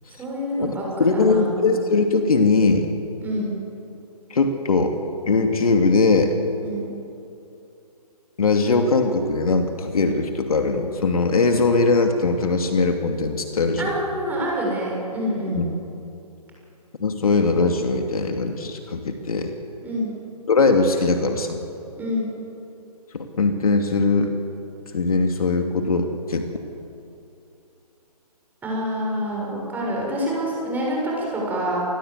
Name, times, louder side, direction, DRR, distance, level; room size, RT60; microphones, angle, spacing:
voice 1, 0.2-1.6 3.2-3.5 6.6-6.9 13.8-15.7 19.8-20.1 22.0-22.3 28.6-31.8, equal, 10° right, -3 dB, 7.1 m, -27 dB
voice 2, 1.0-2.9 4.3-5.0 5.3-6.3 8.4-13.9 15.5-15.6 17.0-19.5 20.5-21.6 23.1-24.3 24.9-26.5, left 3 dB, 60° left, 5 dB, 2.7 m, -20 dB
28.5 x 20.0 x 8.2 m, 2.7 s
figure-of-eight pair, 145°, 21 cm